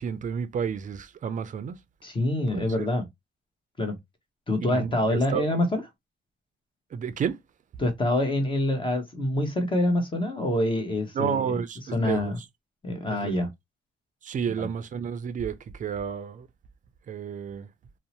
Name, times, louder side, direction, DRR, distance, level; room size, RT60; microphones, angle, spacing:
voice 1, 0.0-1.7 2.5-2.9 4.6-5.4 6.9-7.4 11.1-12.3 13.1-13.3 14.2-16.5 17.1-17.7, right 7 dB, 40° right, 0.4 m, -31 dB
voice 2, 2.0-3.0 3.8-4.0 4.5-5.8 7.8-11.6 11.9-12.4 12.8-13.5 14.6-14.7, left 1 dB, 25° left, 0.9 m, -26 dB
2.6 x 2.0 x 2.8 m
cardioid pair, 90°, 20 cm